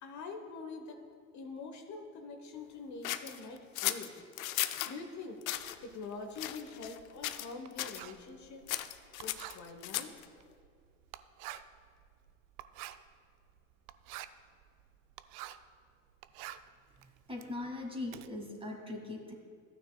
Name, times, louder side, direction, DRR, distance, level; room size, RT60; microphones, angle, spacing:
voice 1, 0.0-1.0 1.3-4.2 4.9-5.4 5.8-8.7 9.2-10.2, left 4 dB, 40° left, 4 dB, 1.1 m, -45 dB
sound 1, 3.0-4.9 5.4-5.8 6.4-7.0 7.2-7.5 7.8-8.0 8.7-10.2, left 14 dB, 80° left, 0.6 m, -36 dB
Writing, 5.5-15.7 16.1-18.3, right 14 dB, 55° right, 0.5 m, -49 dB
voice 2, 17.3-19.3, left 2 dB, 15° right, 1 dB, 2.0 m, -40 dB
14.5 x 9.1 x 2.3 m, 2.2 s
hypercardioid pair, 75°, 41 cm